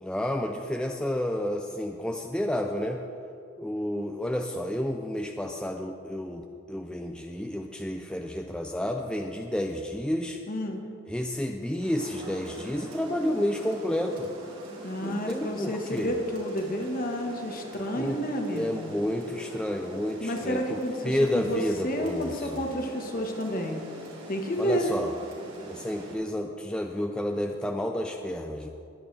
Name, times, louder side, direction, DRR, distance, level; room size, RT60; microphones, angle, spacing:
voice 1, 0.0-3.0 3.6-10.4 11.1-14.3 15.0-16.1 18.0-18.3 18.5-22.6 24.6-25.1 25.7-28.7, left 1 dB, 5° left, 2 dB, 0.4 m, -30 dB
voice 2, 10.5-10.8 14.8-18.8 20.2-23.8 24.3-25.0, equal, 40° left, 3 dB, 1.4 m, -30 dB
Rain, 11.8-26.1, right 1 dB, 70° right, 3.5 m, -43 dB
20.5 x 9.1 x 3.3 m, 2.5 s
head